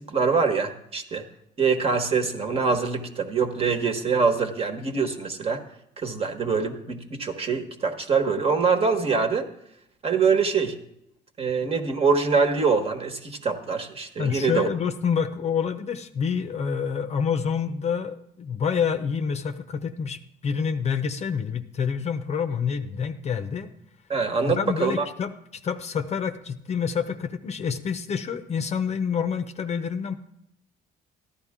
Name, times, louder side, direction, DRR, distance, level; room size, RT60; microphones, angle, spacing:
voice 1, 0.1-1.2 1.6-5.6 6.0-9.5 10.0-10.8 11.4-14.7 24.1-25.0, right 5 dB, 35° right, 6 dB, 1.4 m, -24 dB
voice 2, 14.2-23.7 24.5-30.1, left 6 dB, 40° left, 9 dB, 0.7 m, -27 dB
14.0 x 11.0 x 3.7 m, 0.77 s
cardioid pair, 110°, 17 cm